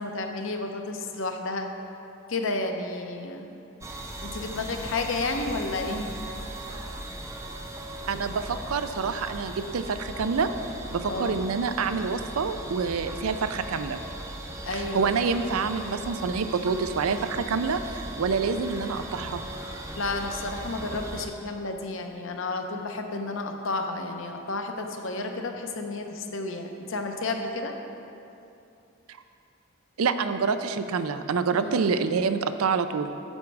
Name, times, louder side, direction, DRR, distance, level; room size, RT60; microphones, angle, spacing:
voice 1, 0.0-1.7 2.3-3.4 4.2-6.1 11.0-11.4 14.6-15.1 18.3-18.8 19.2-19.3 19.9-27.7 31.5-31.9, left 3 dB, 65° left, 4 dB, 0.8 m, -32 dB
sound 1, 3.8-21.3, right 1 dB, 15° right, 0.5 m, -38 dB
voice 2, 8.1-10.5 10.9-14.0 14.7-19.4 30.0-33.1, right 5 dB, 85° right, 10 dB, 0.5 m, -27 dB
9.6 x 7.2 x 4.7 m, 2.7 s
head